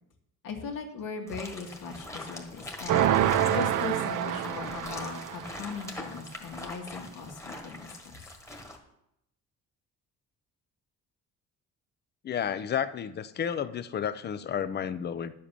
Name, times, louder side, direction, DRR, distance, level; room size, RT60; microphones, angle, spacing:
voice 1, 0.4-7.9, left 5 dB, 75° left, 2 dB, 2.2 m, -39 dB
sound 1, 1.3-8.8, left 1 dB, 10° left, 1.5 m, -43 dB
sound 2, 2.9-5.6, right 10 dB, 70° right, 0.8 m, -26 dB
voice 2, 12.2-15.3, left 8 dB, 30° left, 14 dB, 0.6 m, -31 dB
11.0 x 7.6 x 6.9 m, 0.80 s
cardioid pair, 160°, 32 cm